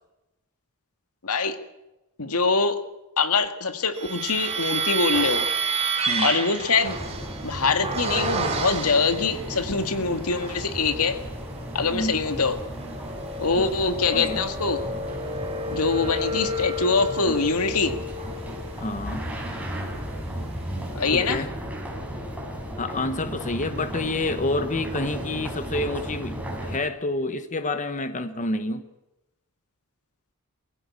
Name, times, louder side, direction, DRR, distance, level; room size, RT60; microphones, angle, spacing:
voice 1, 1.2-1.6 2.2-2.8 3.2-5.5 6.2-7.0 7.4-11.2 11.7-12.6 13.4-14.8 15.7-17.9 20.9-21.4, left 4 dB, 80° left, 8 dB, 2.0 m, -24 dB
sound 1, 3.9-9.4 10.0-10.8 11.3-20.5, right 3 dB, 30° right, 3.4 m, -31 dB
sound 2, 6.8-26.8, equal, 5° right, 5.1 m, -35 dB
voice 2, 14.1-14.4 18.8-19.3 21.1-21.5 22.8-28.9, left 2 dB, 35° left, 10 dB, 1.2 m, -28 dB
23.5 x 16.0 x 8.6 m, 0.97 s
head